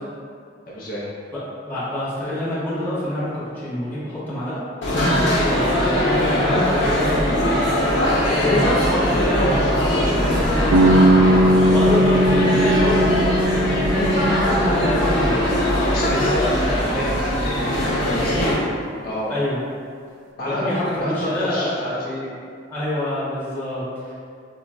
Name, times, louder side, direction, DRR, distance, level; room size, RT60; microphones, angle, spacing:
voice 1, 0.7-1.1 14.5-14.6 15.9-18.5 19.0-19.3 20.4-22.3, equal, 55° left, -6 dB, 0.4 m, -28 dB
voice 2, 1.6-4.6 5.3-7.5 8.2-15.3 18.3-18.5 19.3-19.6 20.4-21.8 22.7-24.1, left 1 dB, 10° left, -10 dB, 1.0 m, -26 dB
sound 1, 4.8-18.5, equal, 90° left, 0.8 m, -21 dB
sound 2, 10.7-16.5, equal, 90° right, 0.4 m, -19 dB
4.4 x 2.0 x 2.4 m, 2.2 s
head